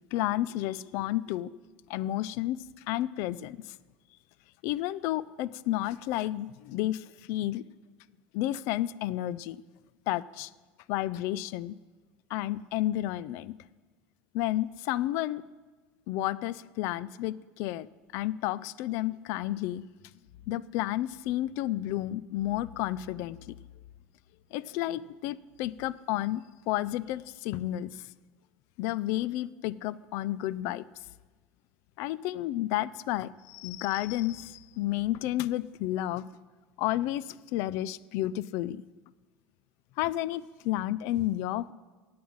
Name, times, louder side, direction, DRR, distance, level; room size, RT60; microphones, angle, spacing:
voice 1, 0.1-1.5 1.9-2.6 2.9-3.6 4.6-7.6 8.3-9.6 10.1-10.5 10.9-11.8 12.3-13.5 14.3-15.4 16.1-17.9 18.1-19.9 20.5-23.6 24.5-28.0 28.8-30.8 32.0-36.3 36.8-38.8 40.0-41.7, left 14 dB, 65° left, 19 dB, 0.4 m, -31 dB
9.4 x 7.7 x 8.7 m, 1.3 s
supercardioid pair, 130°, 5 cm